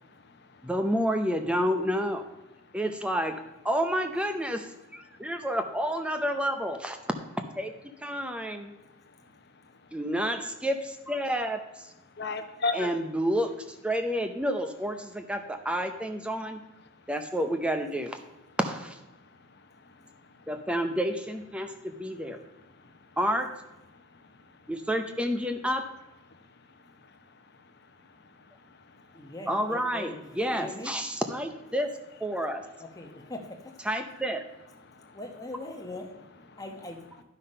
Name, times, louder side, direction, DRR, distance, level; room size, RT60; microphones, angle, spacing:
voice 1, 0.0-0.7 2.7-2.8 5.1-5.3 8.7-9.8 12.1-12.9 16.8-17.0 19.1-20.5 21.7-21.8 22.7-23.2 23.9-24.7 26.3-29.3 34.8-35.2 36.5-36.6, left 3 dB, 50° left, 7 dB, 0.9 m, -41 dB
voice 2, 0.6-2.2 2.7-7.0 7.6-7.7 8.0-8.7 9.9-11.9 12.7-13.5 13.8-16.6 17.1-18.2 18.6-19.0 20.5-22.4 23.2-23.5 24.7-25.9 29.5-31.9 32.2-32.6 33.9-34.4, equal, 5° right, 7 dB, 0.6 m, -29 dB
voice 3, 29.1-31.0 32.8-33.7 35.0-36.1 36.6-37.0, left 2 dB, 15° left, 2 dB, 1.0 m, -41 dB
11.0 x 5.7 x 5.4 m, 0.98 s
head